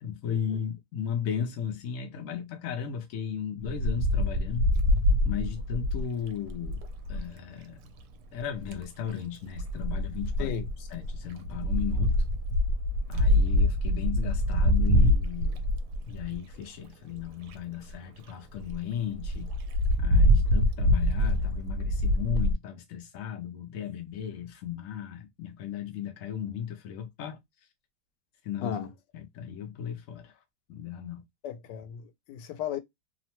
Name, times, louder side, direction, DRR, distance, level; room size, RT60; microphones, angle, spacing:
voice 1, 0.0-4.7 5.2-6.8 7.1-7.8 8.3-10.5 10.9-12.2 13.1-15.6 16.1-19.5 20.0-27.4 28.4-28.9 29.1-30.3 30.7-31.2, left 8 dB, 70° left, 0.8 m, -35 dB
Wind, 3.6-7.3 8.4-8.8 9.6-16.5 17.1-17.2 17.5-17.6 17.9-18.0 18.3-18.4 18.6-18.8 19.2-22.5, left 1 dB, 75° right, 1.1 m, -25 dB
voice 2, 10.4-10.7 20.4-20.5 28.6-28.9 31.4-32.8, left 8 dB, 90° left, 1.2 m, -35 dB
2.9 x 2.1 x 2.8 m
omnidirectional pair, 1.8 m